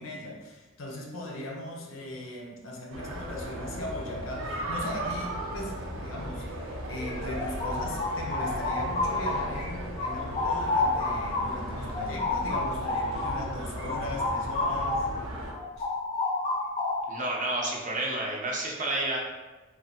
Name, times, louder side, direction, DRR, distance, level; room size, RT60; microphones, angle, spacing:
voice 1, 0.0-15.1 15.8-15.9, left 1 dB, 85° left, 0 dB, 0.6 m, -39 dB
sound 1, 2.9-15.5, right 1 dB, 90° right, 0.6 m, -36 dB
sound 2, 7.1-9.7 10.0-15.2 15.5-17.2, left 3 dB, 30° left, 0.4 m, -30 dB
voice 2, 17.1-19.2, right 2 dB, 40° right, -2 dB, 0.5 m, -30 dB
3.1 x 2.1 x 2.7 m, 1.2 s
head